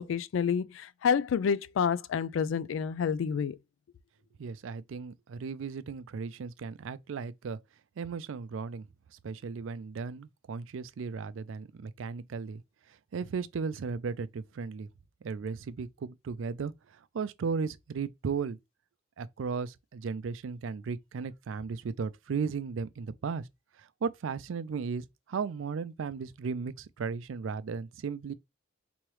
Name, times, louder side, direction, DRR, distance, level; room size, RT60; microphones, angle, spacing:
voice 1, 0.0-3.6, left 7 dB, 80° left, 0.3 m, -29 dB
voice 2, 4.4-7.6 8.0-8.8 9.2-12.6 13.1-14.9 15.2-18.6 19.2-23.5 23.8-28.3, right 5 dB, 90° right, 0.4 m, -36 dB
3.5 x 3.1 x 3.1 m
head